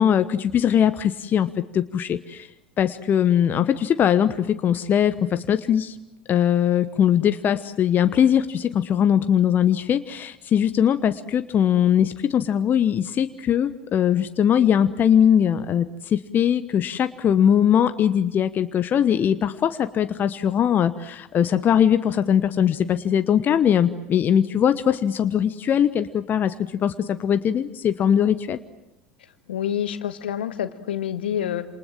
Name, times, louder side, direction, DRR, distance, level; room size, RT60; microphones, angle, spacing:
voice 1, 0.0-2.5 2.8-5.9 6.3-26.5 26.8-28.6, left 9 dB, 35° left, 11 dB, 1.1 m, -21 dB
voice 2, 29.5-31.7, left 10 dB, 70° left, 11 dB, 1.7 m, -27 dB
28.0 x 27.5 x 7.6 m, 0.91 s
figure-of-eight pair, 75°, 6 cm